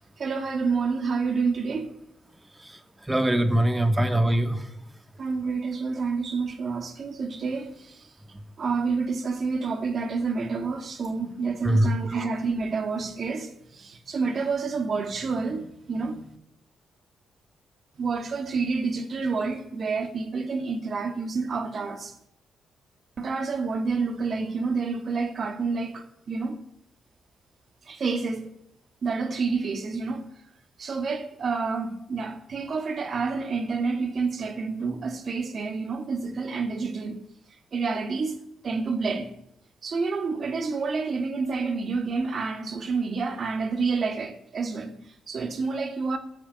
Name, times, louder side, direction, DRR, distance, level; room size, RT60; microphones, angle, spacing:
voice 1, 0.2-1.9 5.2-8.1 8.6-16.2 18.0-22.1 23.2-26.6 27.9-28.5 29.0-30.3 30.8-37.2 37.7-38.4 38.6-39.3 39.8-46.2, right 4 dB, 55° right, 2.2 m, -29 dB
voice 2, 2.6-4.7 11.6-11.9, right 1 dB, 15° right, 2.1 m, -23 dB
13.0 x 7.2 x 8.5 m
hypercardioid pair, 45°, 0 cm